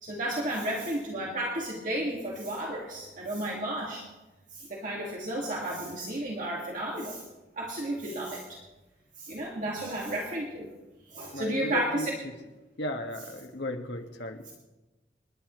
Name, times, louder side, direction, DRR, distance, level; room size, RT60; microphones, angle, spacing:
voice 1, 0.0-4.0 4.5-7.2 7.6-8.6 9.2-10.7 11.1-12.1, right 1 dB, 50° right, -3 dB, 2.1 m, -32 dB
voice 2, 11.3-12.1 12.8-14.4, left 1 dB, 80° left, 3 dB, 1.7 m, -35 dB
29.0 x 10.5 x 3.2 m, 1.1 s
head